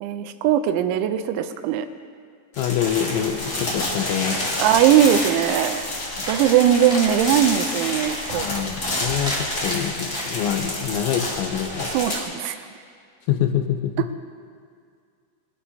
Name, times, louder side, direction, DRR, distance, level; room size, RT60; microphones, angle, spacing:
voice 1, 0.0-1.9 4.6-5.8 6.3-8.7 9.0-9.1 11.9-12.6, right 10 dB, 90° right, 9 dB, 3.1 m, -20 dB
sound 1, 2.5-12.2, left 1 dB, 40° left, 1.5 m, -28 dB
voice 2, 2.6-4.6 8.3-11.9 13.3-14.1, left 9 dB, 85° left, 6 dB, 3.1 m, -26 dB
sound 2, 6.1-10.8, equal, ahead, 1.0 m, -35 dB
22.5 x 12.0 x 2.8 m, 2.1 s
omnidirectional pair, 5.3 m